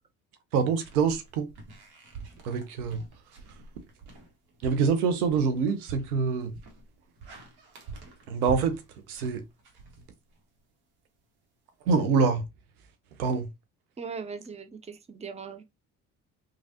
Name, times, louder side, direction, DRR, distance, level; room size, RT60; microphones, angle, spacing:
voice 1, 0.5-1.5 2.4-3.0 4.6-6.5 8.3-8.8 9.1-9.4 11.9-12.4 13.2-13.5, right 5 dB, 85° right, 0.6 m, -25 dB
sound 1, 0.7-10.6, right 4 dB, 60° right, 1.2 m, -45 dB
voice 2, 14.0-15.6, right 5 dB, 15° right, 0.6 m, -39 dB
3.1 x 2.4 x 2.7 m
hypercardioid pair, 50°, 43 cm